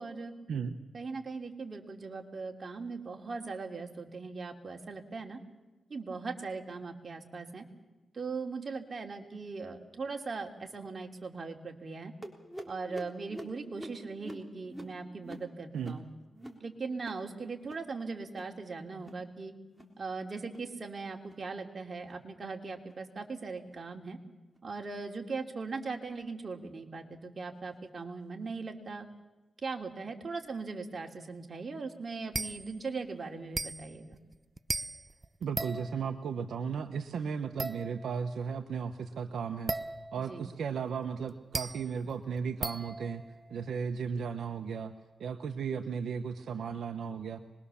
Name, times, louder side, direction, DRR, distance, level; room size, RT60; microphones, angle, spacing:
voice 1, 0.0-0.3 0.9-5.4 5.9-7.6 8.1-12.1 12.7-16.0 16.6-19.5 20.0-24.2 24.6-29.1 29.6-34.2 40.2-40.5, right 4 dB, 45° right, 3 dB, 3.0 m, -39 dB
sound 1, 12.2-17.3 17.5-17.9 18.2-18.6 18.9-19.3 19.6-20.0 20.4-20.7 21.2-21.5 22.0-22.2 22.8-23.0 23.6-23.8 24.5-24.6 25.4-25.5, right 1 dB, 5° right, 3.7 m, -48 dB
sound 2, 32.3-32.8 33.6-36.2 37.6-38.3 39.7-40.4 41.3-43.7, right 2 dB, 30° right, 0.7 m, -37 dB
voice 2, 35.4-39.7 40.1-43.2 43.5-44.9 45.2-47.4, right 6 dB, 85° right, 7 dB, 1.1 m, -35 dB
25.0 x 21.0 x 7.1 m, 1.2 s
cardioid pair, 75°, 0 cm